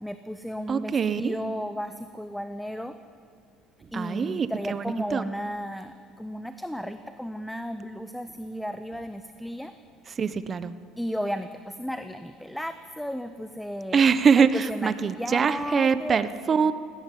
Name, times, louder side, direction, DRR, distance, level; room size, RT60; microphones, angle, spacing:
voice 1, 0.0-2.9 3.9-9.7 11.0-14.0 14.4-16.2, equal, ahead, 9 dB, 0.9 m, -34 dB
voice 2, 0.7-1.4 3.9-5.2 10.1-10.7 13.9-16.8, right 6 dB, 35° right, 13 dB, 1.1 m, -23 dB
18.0 x 17.0 x 9.4 m, 2.2 s
supercardioid pair, 100°, 0 cm